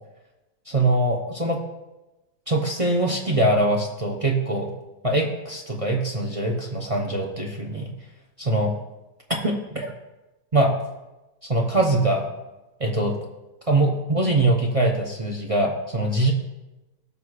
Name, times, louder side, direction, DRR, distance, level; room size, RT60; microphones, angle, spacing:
voice 1, 0.7-1.6 2.5-4.7 5.0-7.9 8.5-8.7 9.4-9.9 10.5-10.7 11.5-12.3 12.8-13.1 13.7-16.3, right 2 dB, 40° right, -1 dB, 0.5 m, -22 dB
17.5 x 6.3 x 2.5 m, 1.0 s
omnidirectional pair, 1.9 m